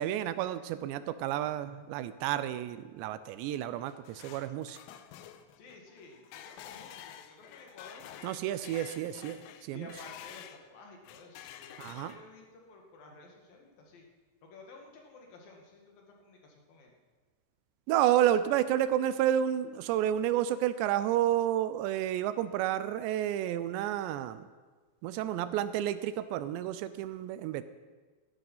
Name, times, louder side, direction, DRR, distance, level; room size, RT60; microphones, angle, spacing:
voice 1, 0.0-4.8 8.2-9.9 11.8-12.1 17.9-24.5 25.0-27.6, right 11 dB, 80° right, 13 dB, 2.8 m, -30 dB
sound 1, 3.6-10.6 11.0-12.5, left 11 dB, 90° left, 3.2 m, -49 dB
voice 2, 5.6-8.7 9.7-14.1 14.4-16.9, left 3 dB, 60° left, 1 dB, 3.6 m, -53 dB
17.5 x 11.5 x 5.6 m, 1.4 s
omnidirectional pair, 5.2 m